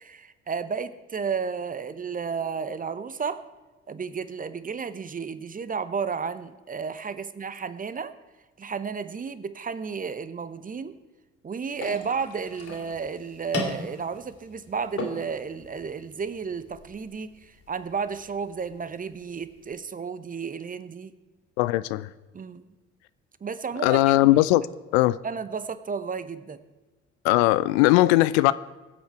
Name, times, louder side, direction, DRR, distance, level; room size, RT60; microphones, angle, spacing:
voice 1, 0.0-3.4 3.9-8.1 8.6-10.9 11.4-21.1 22.3-22.7 23.4-24.0 25.2-26.6, right 6 dB, 25° right, 0.8 m, -32 dB
sound 1, 11.7-19.7, left 2 dB, 40° left, 2.9 m, -39 dB
voice 2, 21.6-22.1 23.8-24.7 24.9-25.2 27.2-28.5, left 17 dB, 65° left, 0.5 m, -19 dB
22.5 x 8.0 x 4.6 m
figure-of-eight pair, 50°, 35 cm